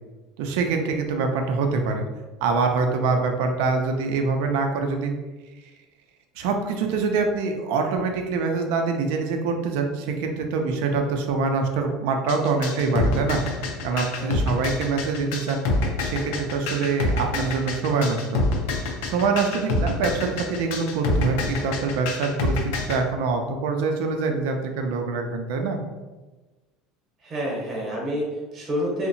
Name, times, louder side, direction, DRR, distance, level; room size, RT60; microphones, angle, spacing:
voice 1, 0.4-2.0 2.4-5.1 6.4-13.4 13.8-15.6 16.0-18.4 19.0-25.8, right 4 dB, 80° right, 4 dB, 0.4 m, -25 dB
sound 1, 12.3-23.0, left 2 dB, 85° left, 0.4 m, -27 dB
voice 2, 14.1-14.5 27.2-29.1, equal, 35° right, -3 dB, 0.8 m, -28 dB
2.7 x 2.0 x 2.6 m, 1.2 s
supercardioid pair, 130°, 0 cm